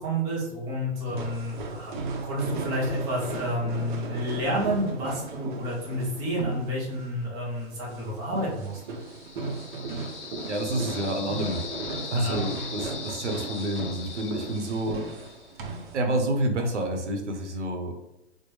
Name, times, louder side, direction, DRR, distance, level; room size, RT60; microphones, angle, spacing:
voice 1, 0.0-1.9 2.2-8.8 12.1-12.4 12.8-12.9, equal, 10° right, -4 dB, 0.3 m, -30 dB
sound 1, 1.1-16.0, right 3 dB, 45° right, 0.7 m, -36 dB
sound 2, 8.7-15.6, left 6 dB, 75° left, 0.7 m, -40 dB
voice 2, 10.5-11.6 12.1-15.3 15.9-17.9, right 1 dB, 85° right, 4 dB, 0.9 m, -29 dB
4.5 x 2.1 x 3.1 m, 0.92 s
hypercardioid pair, 125°, 35 cm